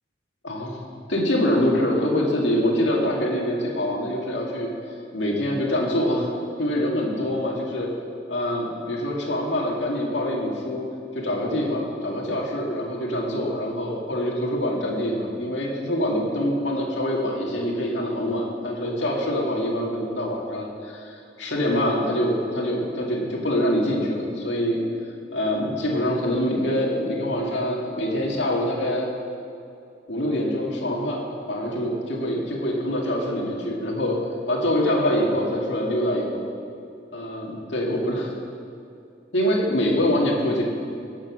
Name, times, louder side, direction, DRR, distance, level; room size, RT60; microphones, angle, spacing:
voice 1, 0.4-4.7 5.1-6.3 6.6-7.9 8.3-10.8 11.1-24.8 25.3-29.1 30.1-34.2 34.5-36.4 37.1-38.3 39.3-40.6, equal, 80° left, -2 dB, 2.3 m, -25 dB
17.0 x 7.4 x 6.2 m, 2.6 s
head